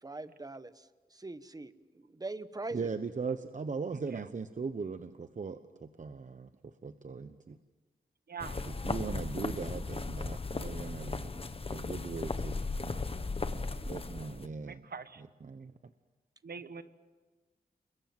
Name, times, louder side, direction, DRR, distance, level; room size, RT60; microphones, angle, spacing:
voice 1, 0.0-2.9 12.9-13.3, right 2 dB, 25° right, 13 dB, 1.2 m, -43 dB
voice 2, 2.7-7.6 8.6-11.3 11.7-12.6 13.9-14.8 15.2-15.7, right 5 dB, 50° right, 10 dB, 1.0 m, -39 dB
sound 1, 8.4-14.5, left 3 dB, 35° left, 1.3 m, -36 dB
voice 3, 14.6-15.2 16.4-16.8, right 5 dB, 70° right, 11 dB, 1.4 m, -43 dB
29.0 x 22.0 x 7.9 m, 1.3 s
wide cardioid pair, 105°, 16 cm